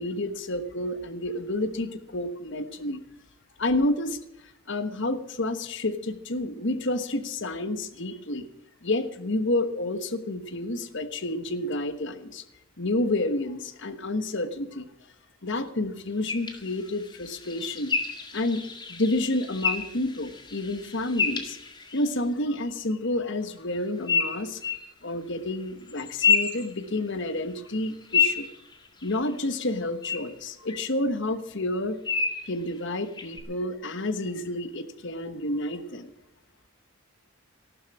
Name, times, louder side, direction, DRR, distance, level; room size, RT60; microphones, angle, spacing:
voice 1, 0.0-3.0 3.6-4.2 4.7-8.5 8.8-12.4 12.8-14.9 15.4-18.0 18.3-18.6 18.9-21.6 21.9-24.6 25.0-28.5 29.0-32.0 32.4-36.1, left 1 dB, 55° left, 10 dB, 1.3 m, -29 dB
sound 1, 16.3-22.1 24.1-24.9 25.9-27.3 27.7-29.4 30.0-30.2 30.7-30.8 32.1-32.5 33.2-33.4, left 5 dB, 20° left, 1.9 m, -29 dB
14.0 x 12.0 x 6.1 m, 0.86 s
head